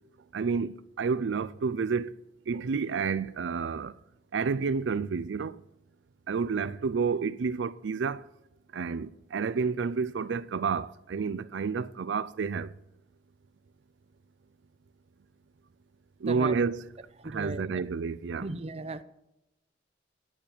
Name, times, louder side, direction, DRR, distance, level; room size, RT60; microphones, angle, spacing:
voice 1, 0.3-2.1 2.5-3.9 4.3-5.6 6.3-8.3 8.7-12.7 16.2-16.8 17.2-18.5, right 5 dB, 85° right, 0.4 m, -30 dB
voice 2, 16.3-16.6 17.2-17.7 18.4-19.0, right 2 dB, 35° right, 0.6 m, -36 dB
11.5 x 8.7 x 6.7 m
head